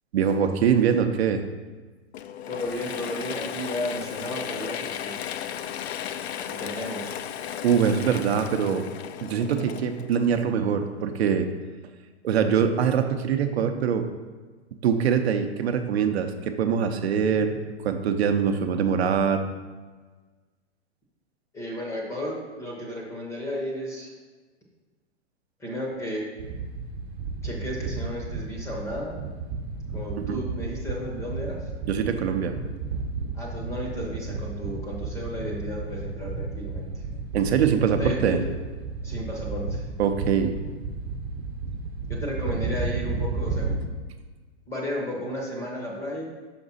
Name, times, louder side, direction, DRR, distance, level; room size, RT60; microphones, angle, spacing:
voice 1, 0.1-1.4 7.6-8.8 9.2-11.5 12.2-14.0 14.8-19.4 30.2-30.4 31.8-32.6 37.3-38.4 40.0-40.6, right 7 dB, 60° right, 7 dB, 0.6 m, -23 dB
Mechanisms / Drill, 2.1-10.7, left 9 dB, 65° left, 0.5 m, -35 dB
voice 2, 2.5-5.2 6.4-7.2 21.5-24.1 25.6-26.3 27.4-29.1 29.9-31.7 33.3-36.9 38.0-38.4 39.0-39.8 42.1-43.7 44.7-46.2, left 1 dB, 10° left, -2 dB, 0.7 m, -33 dB
sound 1, 26.4-43.8, right 4 dB, 40° right, 1.0 m, -33 dB
6.0 x 5.0 x 4.0 m, 1.4 s
hypercardioid pair, 150°, 35 cm